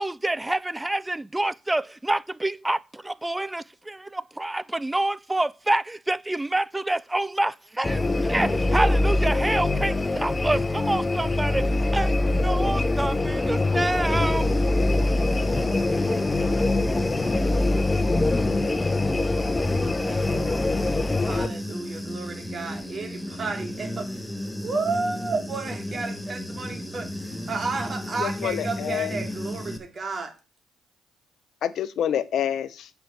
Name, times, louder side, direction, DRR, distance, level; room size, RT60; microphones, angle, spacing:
voice 1, 0.0-14.5, right 2 dB, 15° right, 0.5 m, -27 dB
sound 1, 7.8-21.5, left 2 dB, 25° left, 1.0 m, -23 dB
Human voice / Buzz, 14.0-29.8, left 1 dB, 5° left, 1.8 m, -34 dB
voice 2, 19.8-20.5 21.2-24.2 24.6-30.3, right 4 dB, 50° right, 2.6 m, -32 dB
voice 3, 28.2-29.2 31.6-32.9, left 9 dB, 70° left, 0.8 m, -27 dB
7.7 x 5.9 x 6.9 m
hypercardioid pair, 55°, 0 cm